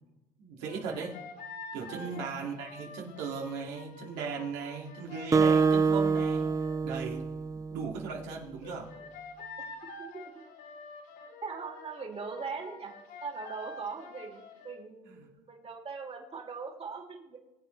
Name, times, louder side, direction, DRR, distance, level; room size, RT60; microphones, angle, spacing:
voice 1, 0.4-1.1 1.7-6.5 6.8-7.2 7.7-8.9 15.1-15.3, right 5 dB, 85° right, -1 dB, 2.3 m, -37 dB
sound 1, 0.6-6.8 8.6-14.8, left 3 dB, 80° left, 3.7 m, -47 dB
voice 2, 1.8-2.2 9.6-9.7 10.0-10.4 11.4-12.9 13.2-17.4, right 5 dB, 35° right, 1 dB, 2.6 m, -41 dB
Acoustic guitar, 5.3-8.1, right 5 dB, 20° right, 0.5 m, -26 dB
21.5 x 8.1 x 3.3 m, 0.95 s
supercardioid pair, 75°, 17 cm